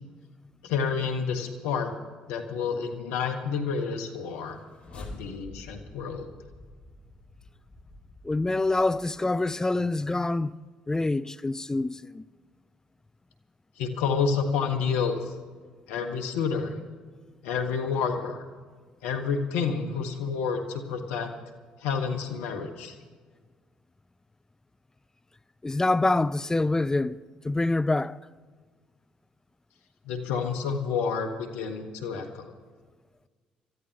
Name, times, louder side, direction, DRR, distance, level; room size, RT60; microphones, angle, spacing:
voice 1, 0.6-1.9 2.3-4.6 4.9-6.3 13.8-15.3 15.9-16.7 17.4-18.4 19.0-21.3 21.8-23.0 30.0-32.5, left 6 dB, 80° left, 1.5 m, -29 dB
sound 1, 4.3-9.6, left 1 dB, 40° left, 3.6 m, -48 dB
voice 2, 8.2-10.5 10.9-12.2 25.6-27.2 27.4-28.2, left 2 dB, 15° left, 0.4 m, -26 dB
28.0 x 14.0 x 3.0 m
hypercardioid pair, 55°, 3 cm